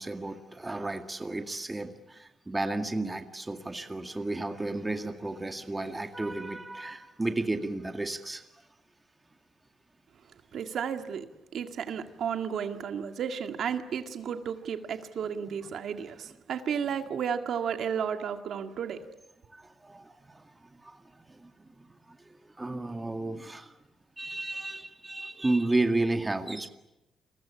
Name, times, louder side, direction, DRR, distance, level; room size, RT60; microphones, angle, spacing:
voice 1, 0.0-8.4 19.5-23.7 24.2-26.7, right 2 dB, 15° right, 2.0 m, -33 dB
voice 2, 10.5-11.3 11.5-19.0, right 7 dB, 65° right, 2.0 m, -33 dB
29.0 x 23.0 x 8.6 m
cardioid pair, 125°, 0 cm